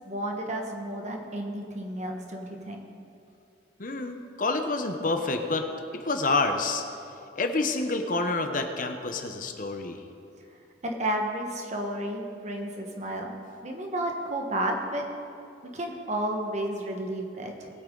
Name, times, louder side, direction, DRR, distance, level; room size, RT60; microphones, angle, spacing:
voice 1, 0.0-2.9 10.8-13.3 13.6-15.0 15.7-17.7, right 1 dB, 40° right, 2 dB, 1.3 m, -32 dB
voice 2, 3.8-5.7 5.9-6.8 7.4-10.0, left 3 dB, 45° left, 6 dB, 0.8 m, -28 dB
19.0 x 8.7 x 3.9 m, 2.6 s
head